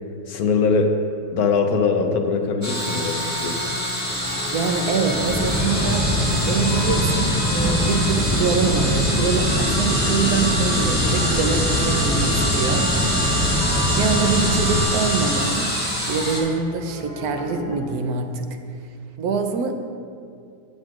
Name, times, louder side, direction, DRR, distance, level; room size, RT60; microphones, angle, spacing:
voice 1, 0.3-0.9 1.3-3.6, left 5 dB, 75° left, 4 dB, 1.2 m, -21 dB
sound 1, 2.6-16.4, equal, 10° left, 1.6 m, -25 dB
Piano, 4.1-17.8, equal, 40° left, 1.7 m, -36 dB
voice 2, 4.5-12.9 13.2-13.5 14.0-15.7 16.1-18.5 19.2-19.7, right 5 dB, 75° right, 5 dB, 1.2 m, -24 dB
sound 2, 5.0-14.8, left 1 dB, 10° right, 0.5 m, -23 dB
15.0 x 7.6 x 2.5 m, 2.4 s
omnidirectional pair, 1.6 m